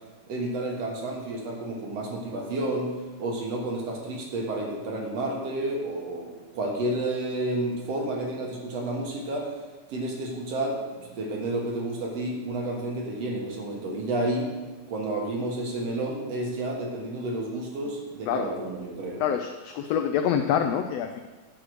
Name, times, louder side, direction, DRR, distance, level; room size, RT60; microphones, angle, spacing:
voice 1, 0.3-2.9 3.2-6.3 6.5-9.5 9.9-14.5 14.9-19.2, right 1 dB, 60° right, 0 dB, 2.3 m, -30 dB
voice 2, 19.2-21.2, left 8 dB, 85° left, 6 dB, 1.4 m, -26 dB
10.0 x 4.9 x 6.2 m, 1.3 s
omnidirectional pair, 3.4 m